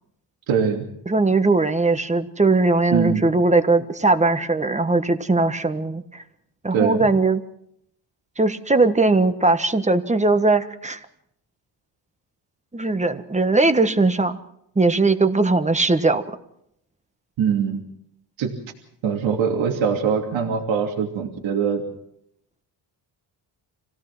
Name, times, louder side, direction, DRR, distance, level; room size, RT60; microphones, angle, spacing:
voice 1, 0.5-0.8 2.9-3.3 6.7-7.1 17.4-17.8 18.4-18.5 19.0-21.8, right 7 dB, 90° right, 1 dB, 3.0 m, -22 dB
voice 2, 1.1-6.2 6.6-7.4 8.4-11.0 12.7-14.4 14.7-16.2, right 3 dB, 15° right, 9 dB, 1.4 m, -19 dB
27.0 x 17.5 x 6.1 m, 0.75 s
cardioid pair, 105°, 45 cm